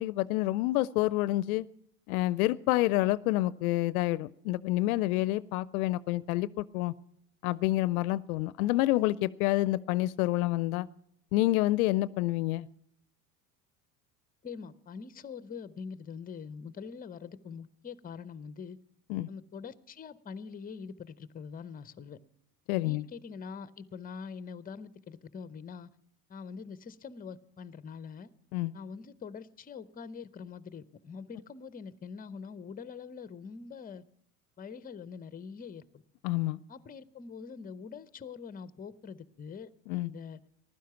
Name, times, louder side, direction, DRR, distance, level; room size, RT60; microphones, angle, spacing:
voice 1, 0.0-1.7 2.1-6.9 7.4-10.9 11.3-12.7 19.1-19.3 22.7-23.1 28.5-28.7 36.2-36.6 39.9-40.1, left 17 dB, 65° left, 19 dB, 0.6 m, -28 dB
voice 2, 14.4-18.8 19.3-22.2 22.8-25.9 26.3-28.3 28.7-34.0 34.6-35.8 36.7-40.4, left 6 dB, 20° left, 16 dB, 0.7 m, -44 dB
15.0 x 12.0 x 5.7 m, 0.71 s
hypercardioid pair, 80°, 46 cm